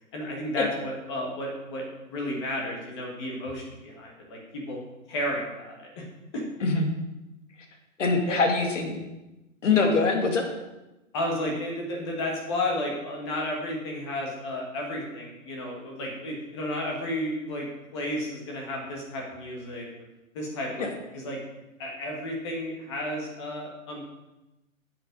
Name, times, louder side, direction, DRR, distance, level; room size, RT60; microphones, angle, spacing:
voice 1, 0.1-1.8 2.1-4.8 5.1-6.0 6.3-6.4 8.3-8.4 11.1-17.7 17.9-19.9 20.3-20.7 21.1-21.4 21.8-24.0, left 1 dB, 20° left, -1 dB, 1.7 m, -32 dB
voice 2, 8.0-8.9 9.6-10.4 20.8-20.9, left 4 dB, 65° left, 3 dB, 2.3 m, -23 dB
9.3 x 7.8 x 5.3 m, 0.99 s
hypercardioid pair, 180°, 40 cm